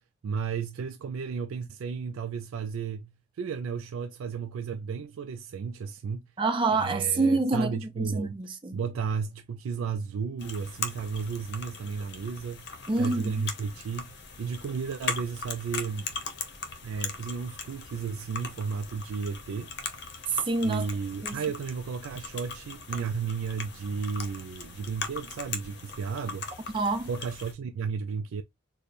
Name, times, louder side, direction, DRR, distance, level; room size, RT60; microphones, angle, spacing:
voice 1, 0.2-3.1 3.4-6.2 6.7-8.3 8.7-12.7 12.9-16.1 16.8-19.7 20.6-26.5 27.1-28.4, right 5 dB, 75° right, 0.3 m, -33 dB
voice 2, 6.4-8.8 12.9-13.4 20.3-20.9 21.2-21.4 26.7-27.1, right 3 dB, 25° right, 0.5 m, -27 dB
sound 1, 10.4-27.5, left 5 dB, 50° left, 0.7 m, -39 dB
4.1 x 2.1 x 3.2 m
head